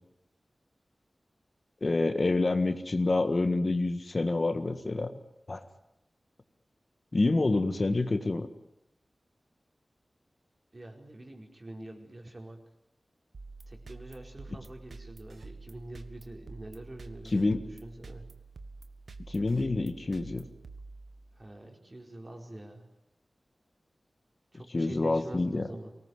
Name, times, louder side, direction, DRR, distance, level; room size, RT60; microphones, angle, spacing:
voice 1, 1.8-5.1 5.5-5.6 7.1-8.5 17.3-17.6 19.3-20.5 24.7-25.7, left 2 dB, 45° left, 8 dB, 1.7 m, -27 dB
voice 2, 10.7-12.6 13.7-18.2 21.3-22.8 24.5-25.9, right 1 dB, 40° right, 2 dB, 4.8 m, -46 dB
Minimal Techno Basic Beat, 13.3-21.5, right 3 dB, 85° right, 1.5 m, -48 dB
24.5 x 19.0 x 9.7 m, 0.85 s
wide cardioid pair, 90°, 0 cm